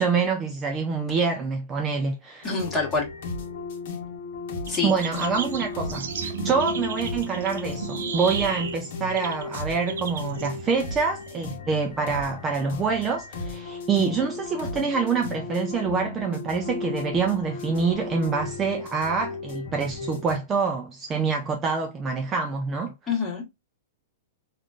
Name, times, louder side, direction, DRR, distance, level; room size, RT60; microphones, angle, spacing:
voice 1, 0.0-2.5 4.8-22.9, right 5 dB, 15° right, 0.3 m, -26 dB
sound 1, 2.4-20.4, left 4 dB, 55° left, 0.9 m, -35 dB
voice 2, 2.4-3.1 4.7-4.9 23.1-23.4, left 4 dB, 15° left, 1.2 m, -26 dB
sound 2, 4.7-11.6, right 7 dB, 75° right, 0.6 m, -34 dB
3.6 x 2.4 x 2.3 m
hypercardioid pair, 155°, 0 cm